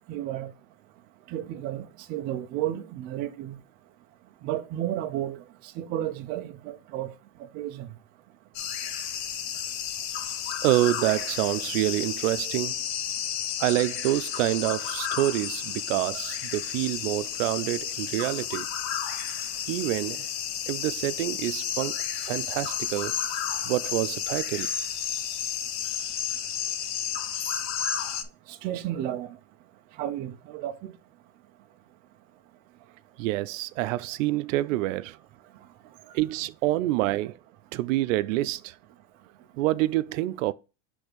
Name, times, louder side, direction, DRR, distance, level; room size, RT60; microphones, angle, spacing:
voice 1, 0.1-0.5 1.3-3.6 4.4-5.4 5.8-7.1 7.4-7.9 28.5-29.4 30.0-30.9, right 12 dB, 25° right, 0.4 m, -32 dB
sound 1, 8.5-28.2, left 9 dB, 55° left, 0.9 m, -32 dB
voice 2, 10.6-12.8 13.6-18.7 19.7-20.3 20.7-23.2 23.6-24.7 33.2-35.2 36.1-37.4 37.7-38.7 39.6-40.5, right 16 dB, 85° right, 0.5 m, -27 dB
6.3 x 3.4 x 5.0 m
supercardioid pair, 170°, 38 cm